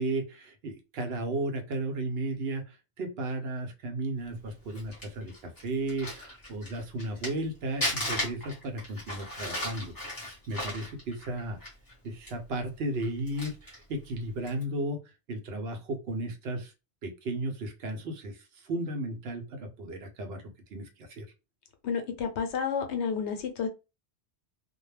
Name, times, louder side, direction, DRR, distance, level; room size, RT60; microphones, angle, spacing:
voice 1, 0.0-11.6 12.0-15.0 15.3-16.7 17.0-20.4 20.7-21.3, right 2 dB, 70° right, 4 dB, 0.8 m, -34 dB
Crumpling crinkling, 4.5-7.4 7.8-11.9 12.3-12.4 12.9-13.8 14.4-14.6, left 1 dB, 20° left, 0.9 m, -36 dB
voice 2, 21.8-23.7, left 6 dB, 75° left, 6 dB, 0.9 m, -30 dB
2.2 x 2.1 x 3.1 m, 0.28 s
omnidirectional pair, 1.2 m